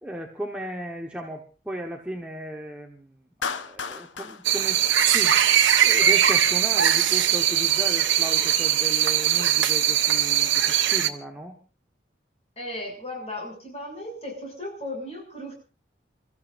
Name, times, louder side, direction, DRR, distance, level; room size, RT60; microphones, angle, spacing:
voice 1, 0.0-3.1 3.5-5.6 5.8-11.6, equal, 5° right, 0 dB, 1.3 m, -36 dB
Clapping, 3.4-5.7, left 5 dB, 90° left, 0.9 m, -35 dB
sound 1, 4.4-11.1, right 10 dB, 90° right, 1.0 m, -21 dB
voice 2, 12.6-15.5, left 1 dB, 35° left, 0 dB, 6.9 m, -36 dB
28.5 x 14.0 x 2.6 m, 0.35 s
head